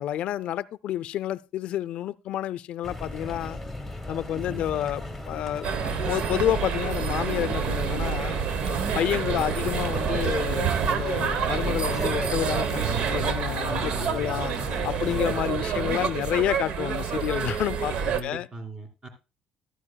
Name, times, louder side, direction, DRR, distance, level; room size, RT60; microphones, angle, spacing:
voice 1, 0.0-3.6 4.1-5.7 6.0-8.4 8.9-14.5 14.8-18.5, left 12 dB, 60° left, 0.4 m, -29 dB
sound 1, 2.8-15.4, left 1 dB, ahead, 1.3 m, -37 dB
sound 2, 5.6-18.2, right 7 dB, 60° right, 0.9 m, -28 dB
voice 2, 9.2-9.6 13.7-14.4 15.0-16.3 18.0-19.1, right 2 dB, 25° right, 2.5 m, -40 dB
14.5 x 11.5 x 2.2 m
cardioid pair, 145°, 2 cm